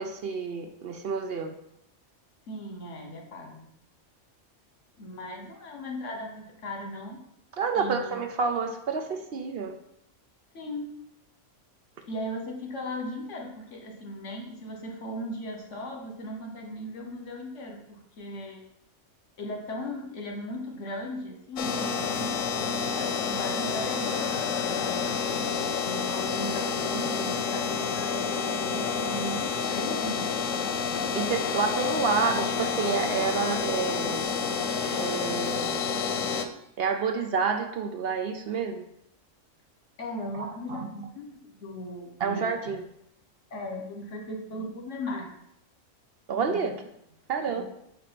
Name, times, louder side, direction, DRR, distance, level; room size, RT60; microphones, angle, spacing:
voice 1, 0.0-1.5 7.6-9.7 31.1-34.3 35.0-35.8 36.8-38.8 40.3-40.9 42.2-42.8 46.3-46.7 47.3-47.6, right 5 dB, 60° right, 5 dB, 0.8 m, -29 dB
voice 2, 2.5-3.7 5.0-7.2 7.7-8.2 10.5-10.9 12.0-18.6 19.4-24.3 24.6-25.1 25.8-30.6 40.0-42.4 43.5-45.3 46.5-46.7 47.5-47.6, left 1 dB, 70° left, 2 dB, 1.5 m, -37 dB
sound 1, 21.6-36.4, left 6 dB, 85° left, 1.0 m, -29 dB
5.1 x 4.8 x 5.8 m, 0.77 s
omnidirectional pair, 1.3 m